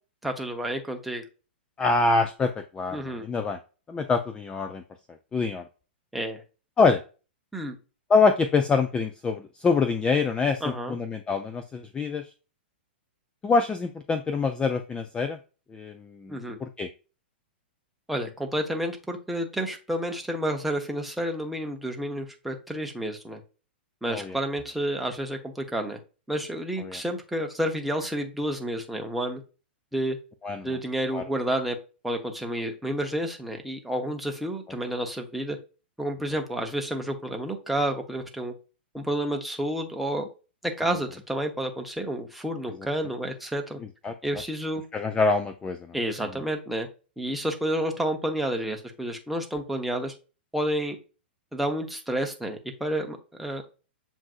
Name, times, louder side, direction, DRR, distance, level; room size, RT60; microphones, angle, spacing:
voice 1, 0.2-1.2 2.9-3.3 6.1-6.4 7.5-7.8 10.6-11.0 16.3-16.6 18.1-23.4 24.0-26.0 26.3-29.4 29.9-30.2 30.6-31.8 32.0-35.6 36.0-38.5 38.9-40.3 40.6-43.8 44.2-44.8 45.9-46.9 47.2-50.1 50.5-51.0 51.5-53.6, right 1 dB, ahead, 3 dB, 0.8 m, -30 dB
voice 2, 1.8-3.6 3.9-4.8 5.3-5.6 6.8-7.0 8.1-12.2 13.4-15.4 15.7-16.9 24.1-24.4 26.9-27.0 30.4-30.7 31.1-31.2 44.0-44.1 44.9-46.0, left 4 dB, 15° left, 8 dB, 0.4 m, -25 dB
7.2 x 2.6 x 2.4 m, 0.33 s
hypercardioid pair, 125°, 6 cm